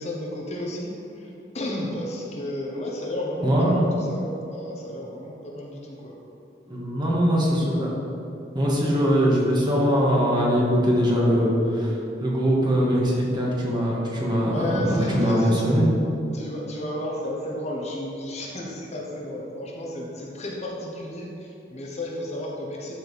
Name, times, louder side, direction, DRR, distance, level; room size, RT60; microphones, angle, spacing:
voice 1, 0.0-6.2 14.5-15.8 16.3-22.9, left 1 dB, 40° left, -2 dB, 1.2 m, -32 dB
voice 2, 3.4-3.8 6.7-7.9 8.5-11.9 12.2-15.9, equal, 25° right, -4 dB, 1.7 m, -21 dB
13.0 x 5.1 x 4.2 m, 2.8 s
head